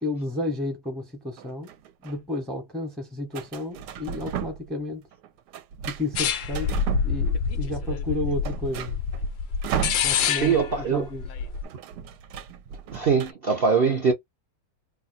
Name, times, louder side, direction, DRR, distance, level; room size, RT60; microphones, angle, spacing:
voice 1, 0.0-1.7 2.0-5.1 5.9-6.7 7.0-9.0 10.0-11.3, left 2 dB, ahead, 0.5 m, -32 dB
sound 1, 1.4-2.2 3.3-4.8 5.1-7.6 7.9-8.0 8.3-10.5 10.8-11.0 11.2-13.3, right 8 dB, 75° right, 1.1 m, -34 dB
sound 2, 6.2-11.6, left 6 dB, 80° left, 0.7 m, -27 dB
voice 2, 10.2-11.1 12.9-14.1, right 5 dB, 60° right, 0.6 m, -22 dB
2.8 x 2.2 x 4.0 m
omnidirectional pair, 1.9 m